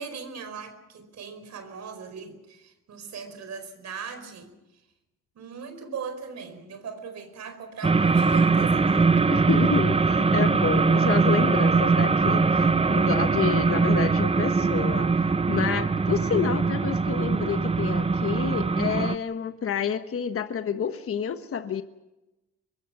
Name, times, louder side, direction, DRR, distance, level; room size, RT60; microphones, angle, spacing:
voice 1, 0.0-4.5 5.3-9.1, right 6 dB, 65° right, 9 dB, 4.8 m, -39 dB
sound 1, 7.8-19.1, right 4 dB, 20° right, 0.8 m, -22 dB
voice 2, 9.3-15.1 15.5-21.8, left 7 dB, 45° left, 8 dB, 1.3 m, -29 dB
24.5 x 22.0 x 6.0 m, 0.99 s
cardioid pair, 90°, 30 cm